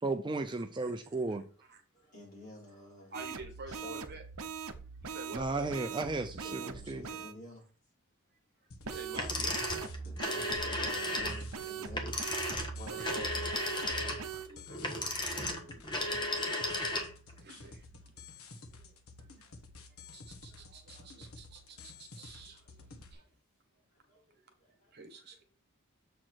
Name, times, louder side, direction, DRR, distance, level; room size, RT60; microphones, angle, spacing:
voice 1, 0.0-1.4 5.3-6.6 6.9-7.0, right 3 dB, 20° right, 0.5 m, -34 dB
voice 2, 1.9-3.2 3.7-4.0 6.4-7.7 9.7-12.2 12.8-13.5 18.0-18.1 18.3-18.9 19.4-19.6 20.0-20.7 21.7-22.9 23.1-23.2 23.9-25.2, left 1 dB, 40° left, 4.3 m, -52 dB
voice 3, 3.1-4.2 5.0-6.3 8.8-9.9 12.9-13.4 13.9-16.0 16.8-17.0 17.4-17.8 18.5-18.6 20.1-22.6 23.1-23.2 24.9-25.4, right 2 dB, 50° right, 1.4 m, -49 dB
sound 1, 3.1-7.3 8.8-14.5, right 6 dB, 70° right, 0.8 m, -41 dB
sound 2, 8.7-23.1, left 3 dB, 70° left, 1.2 m, -52 dB
sound 3, 9.1-17.3, left 1 dB, 20° left, 1.4 m, -34 dB
7.5 x 4.6 x 4.5 m
head